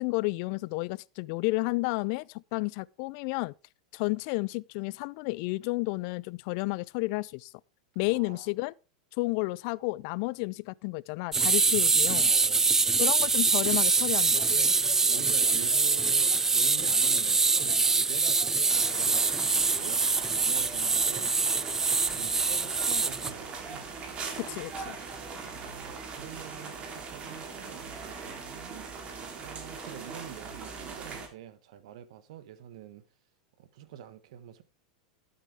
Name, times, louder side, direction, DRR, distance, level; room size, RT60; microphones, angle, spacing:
voice 1, 0.0-3.5 3.9-7.5 8.0-8.7 9.2-12.3 13.0-14.7 24.4-25.0, left 24 dB, 55° left, 0.4 m, -31 dB
voice 2, 8.1-8.5 12.2-12.9 14.9-20.0 20.3-21.5 21.8-23.9 25.4-33.0 33.6-34.6, right 10 dB, 70° right, 1.4 m, -46 dB
sound 1, 11.3-23.3, right 4 dB, 15° right, 0.4 m, -24 dB
sound 2, 14.3-20.3, left 3 dB, 20° left, 4.1 m, -49 dB
sound 3, 18.7-31.3, right 4 dB, 35° right, 3.4 m, -41 dB
11.5 x 8.7 x 3.6 m
hypercardioid pair, 110°, 3 cm